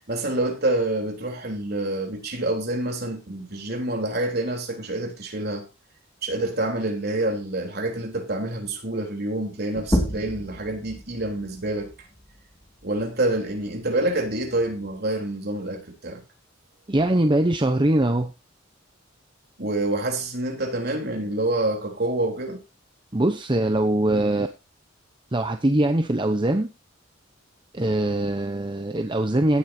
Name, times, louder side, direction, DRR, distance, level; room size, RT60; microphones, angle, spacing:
voice 1, 0.1-5.7 6.2-11.9 12.8-16.2 19.6-22.6, right 2 dB, 50° right, 3.6 m, -27 dB
sound 1, 9.7-14.9, equal, 15° left, 2.7 m, -32 dB
voice 2, 16.9-18.3 23.1-24.5 25.3-26.7 27.7-29.6, right 1 dB, 25° right, 0.8 m, -22 dB
17.0 x 8.5 x 2.8 m
head